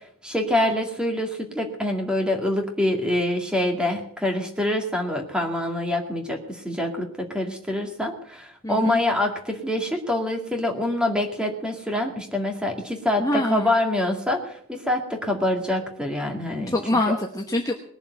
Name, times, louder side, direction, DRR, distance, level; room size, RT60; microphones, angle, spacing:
voice 1, 0.2-16.8, left 1 dB, 5° right, 3 dB, 2.1 m, -25 dB
voice 2, 8.6-9.0 13.2-13.7 16.7-17.7, left 1 dB, 15° left, 1 dB, 1.1 m, -24 dB
20.0 x 7.2 x 8.0 m, 0.64 s
head